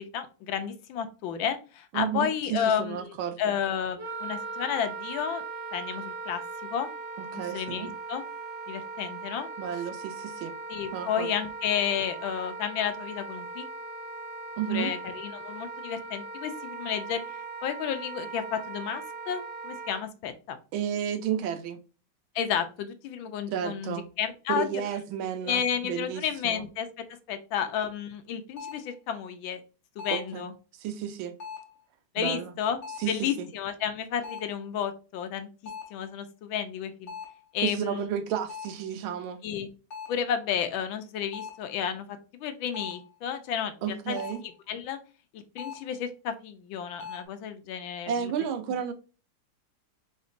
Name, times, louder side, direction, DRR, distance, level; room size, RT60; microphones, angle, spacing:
voice 1, 0.0-5.4 5.7-6.9 7.3-8.2 8.7-9.5 10.7-13.6 14.7-17.2 17.6-20.6 22.3-24.7 25.4-29.6 30.0-30.5 32.1-32.8 33.1-35.5 35.9-37.1 37.5-38.1 39.4-39.7 40.1-44.2 44.7-45.0 45.3-48.3, left 8 dB, 75° left, 1.4 m, -32 dB
voice 2, 1.9-3.6 7.3-7.9 9.6-10.5 10.9-11.3 14.6-14.9 20.7-21.8 23.5-24.1 24.5-26.7 30.1-30.4 30.8-31.3 32.2-32.5 33.0-33.5 37.6-39.4 43.8-44.4 48.1-48.9, right 9 dB, 80° right, 1.4 m, -32 dB
Wind instrument woodwind instrument, 4.0-20.0, right 4 dB, 45° right, 1.9 m, -39 dB
sound 1, 28.6-28.9 30.0-30.4 31.4-31.8 32.8-33.2 34.2-34.6 35.7-36.1 37.1-37.5 38.5-38.9 39.9-40.3 41.3-41.7 42.7-43.1 44.2-44.5 45.6-45.9 47.0-47.2, left 6 dB, 50° left, 1.6 m, -41 dB
4.3 x 4.0 x 2.4 m
omnidirectional pair, 2.2 m